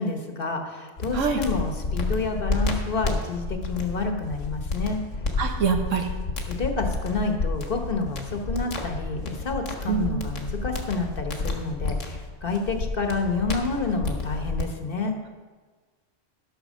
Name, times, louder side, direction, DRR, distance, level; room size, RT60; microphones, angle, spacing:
voice 1, 0.0-5.0 6.5-15.2, left 3 dB, 50° left, 5 dB, 1.3 m, -29 dB
sound 1, 1.0-14.6, left 3 dB, 80° left, 1.8 m, -30 dB
voice 2, 5.4-6.1 9.9-10.3, right 6 dB, 90° right, 4 dB, 1.5 m, -25 dB
13.0 x 6.0 x 6.3 m, 1.4 s
omnidirectional pair, 1.3 m